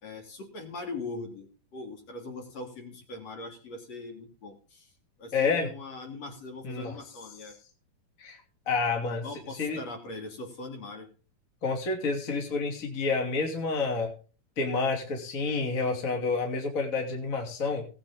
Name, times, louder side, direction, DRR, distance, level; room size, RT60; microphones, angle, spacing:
voice 1, 0.0-4.9 5.2-7.5 9.0-11.1, left 2 dB, 45° left, 3 dB, 3.9 m, -41 dB
voice 2, 5.3-5.7 6.6-6.9 8.2-8.4 8.7-9.2 9.6-9.8 11.6-14.1 14.6-17.9, left 4 dB, 25° left, 1 dB, 2.9 m, -29 dB
19.0 x 8.8 x 3.6 m, 0.38 s
omnidirectional pair, 4.1 m